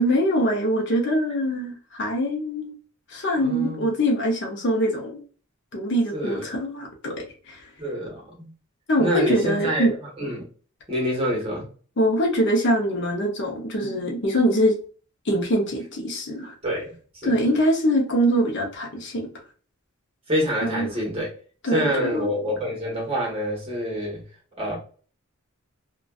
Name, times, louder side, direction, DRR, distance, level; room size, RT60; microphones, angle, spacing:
voice 1, 0.0-2.7 3.1-5.2 5.7-7.7 8.9-9.9 12.0-14.8 15.3-16.5 17.2-19.3 20.6-20.9 21.6-22.3, equal, 55° left, 0.6 m, -23 dB
voice 2, 3.4-3.9 6.1-6.5 7.8-8.5 9.0-9.9 10.2-10.4 10.9-11.6 16.6-16.9 17.2-17.4 20.3-21.3 21.7-24.2 24.6-24.7, equal, 25° right, 1.1 m, -26 dB
2.5 x 2.2 x 2.2 m
head